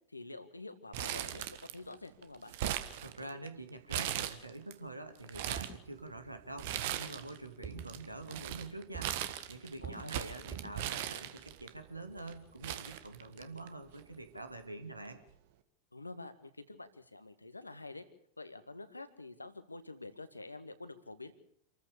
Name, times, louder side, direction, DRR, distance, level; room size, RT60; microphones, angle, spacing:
voice 1, 0.1-2.5 9.8-10.3 15.9-18.0 18.4-21.3, left 2 dB, 80° left, 11 dB, 1.8 m, -47 dB
Crumpling crinkling, 0.9-1.9 2.2-3.5 3.9-4.7 5.1-5.8 6.6-7.4 7.6-11.7 12.3-12.4 12.6-13.7 14.0-14.1 15.0-15.3, right 12 dB, 50° right, 1.5 m, -38 dB
voice 2, 3.0-9.2 9.5-15.2, right 2 dB, 85° right, 8 dB, 2.4 m, -46 dB
Fireworks, 5.5-14.7, right 8 dB, 30° right, 6.1 m, -52 dB
27.0 x 14.5 x 6.7 m, 0.67 s
figure-of-eight pair, 90°, 0 cm